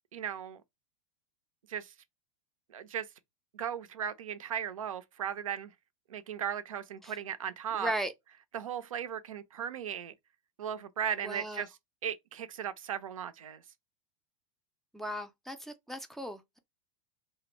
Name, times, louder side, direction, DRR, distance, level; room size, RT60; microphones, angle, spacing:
voice 1, 0.1-0.6 1.7-1.9 2.7-3.1 3.5-5.7 6.1-7.9 8.5-10.1 10.6-11.7 12.0-13.6, right 9 dB, 85° right, 0.4 m, -36 dB
voice 2, 7.7-8.1 11.2-11.6 14.9-16.6, right 1 dB, ahead, 0.4 m, -37 dB
2.2 x 2.0 x 3.0 m
hypercardioid pair, 95°, 17 cm